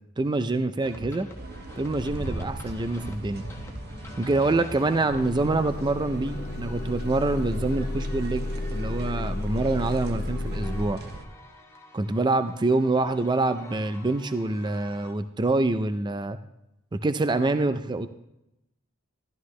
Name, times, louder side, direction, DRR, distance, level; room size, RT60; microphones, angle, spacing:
voice 1, 0.2-1.3 1.8-3.5 4.2-11.0 11.9-16.4 16.9-18.1, right 2 dB, 20° right, 10 dB, 0.4 m, -26 dB
sound 1, 0.8-15.1, equal, 15° left, 1.2 m, -47 dB
sound 2, 1.3-11.2, right 1 dB, 50° right, 0.9 m, -41 dB
Motor vehicle (road) / Engine starting / Idling, 5.1-10.9, left 1 dB, 35° left, 1.0 m, -32 dB
13.0 x 11.5 x 3.2 m, 0.88 s
head